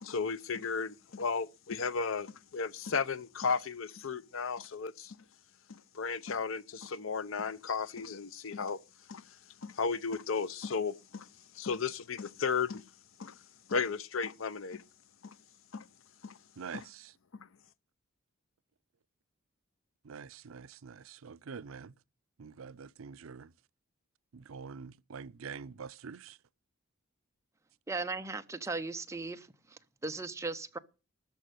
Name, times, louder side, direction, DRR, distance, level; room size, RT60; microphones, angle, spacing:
voice 1, 0.0-5.2 5.7-8.8 9.1-9.3 9.6-11.3 11.5-12.8 13.2-13.4 13.7-14.8 15.2-15.3 15.7-15.8 16.2-16.4 16.7-16.8, left 5 dB, 70° left, 0.6 m, -34 dB
voice 2, 16.6-17.1 20.0-21.9 22.4-23.5 24.3-26.4, right 6 dB, 75° right, 0.5 m, -46 dB
voice 3, 27.9-30.8, right 3 dB, 15° right, 0.7 m, -38 dB
13.5 x 5.4 x 9.1 m
head